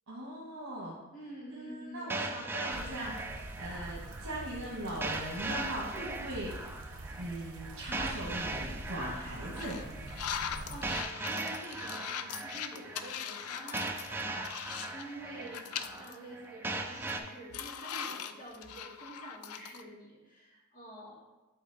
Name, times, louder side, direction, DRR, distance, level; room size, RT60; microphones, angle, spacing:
voice 1, 0.1-1.0 1.5-3.3 3.6-6.5 7.2-9.8, right 1 dB, 65° right, -5 dB, 1.3 m, -39 dB
voice 2, 1.1-2.2 10.3-21.2, right 1 dB, 40° left, -5 dB, 2.2 m, -48 dB
sound 1, 2.1-17.2, right 2 dB, 10° right, 0.4 m, -40 dB
sound 2, 2.7-11.0, right 1 dB, 85° right, 0.7 m, -45 dB
sound 3, 8.1-8.4 8.9-9.0 9.6-15.1 15.4-16.2 16.5-16.6 16.9-19.8, left 8 dB, 90° left, 0.4 m, -40 dB
7.9 x 4.1 x 4.0 m, 1.1 s
head